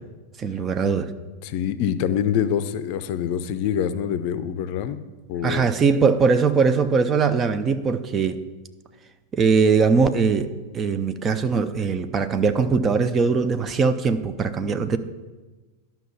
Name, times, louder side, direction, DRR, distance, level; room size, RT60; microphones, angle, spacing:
voice 1, 0.4-1.1 5.4-8.4 9.3-15.0, right 5 dB, 25° right, 10 dB, 0.5 m, -21 dB
voice 2, 1.4-5.0 5.3-5.7, left 9 dB, 45° left, 12 dB, 0.5 m, -25 dB
11.5 x 5.7 x 5.6 m, 1.3 s
figure-of-eight pair, 90°, 0 cm